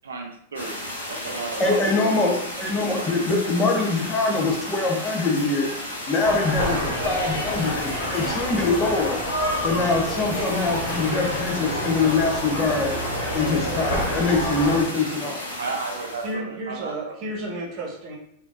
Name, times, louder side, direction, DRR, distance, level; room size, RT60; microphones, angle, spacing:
voice 1, 0.0-0.8 1.1-1.9 2.9-3.1 15.6-17.1, right 4 dB, 70° right, 1 dB, 0.5 m, -33 dB
sound 1, 0.5-16.3, left 1 dB, 75° left, 0.9 m, -34 dB
voice 2, 1.6-5.7 6.1-9.2 9.6-12.9 13.3-15.4, left 3 dB, 20° left, 0 dB, 0.8 m, -23 dB
sound 2, 6.2-14.8, equal, 55° left, 1.0 m, -28 dB
voice 3, 16.2-18.2, right 1 dB, 40° right, -2 dB, 1.1 m, -32 dB
3.6 x 2.7 x 2.5 m, 0.70 s
figure-of-eight pair, 90°, 0 cm